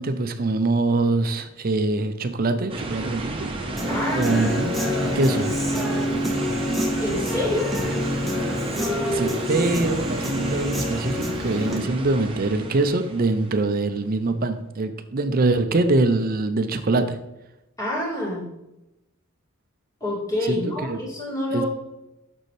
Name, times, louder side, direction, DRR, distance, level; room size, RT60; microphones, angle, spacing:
voice 1, 0.0-3.5 4.1-5.5 9.1-17.2 20.5-21.0 21.5-21.6, right 2 dB, 45° right, 9 dB, 0.5 m, -23 dB
sound 1, 2.7-13.9, right 2 dB, 25° right, 0.9 m, -32 dB
Human voice / Guitar, 3.8-11.8, left 1 dB, ahead, 1.0 m, -27 dB
voice 2, 3.9-4.6 7.0-7.7 17.8-18.5 20.0-21.7, left 1 dB, 15° left, -6 dB, 2.4 m, -27 dB
6.7 x 6.3 x 3.2 m, 0.92 s
head